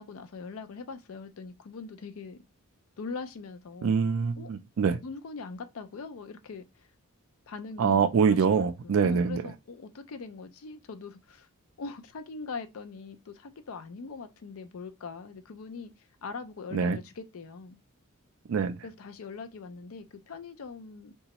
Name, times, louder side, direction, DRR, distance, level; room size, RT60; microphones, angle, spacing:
voice 1, 0.0-2.4 3.0-4.0 4.4-4.5 5.0-6.9 7.5-8.0 8.3-11.5 11.8-17.8 18.8-21.1, left 4 dB, 65° left, 0.5 m, -42 dB
voice 2, 3.8-5.0 7.8-9.4 16.7-17.0 18.5-18.8, right 6 dB, 60° right, 0.3 m, -24 dB
3.9 x 2.3 x 2.9 m
head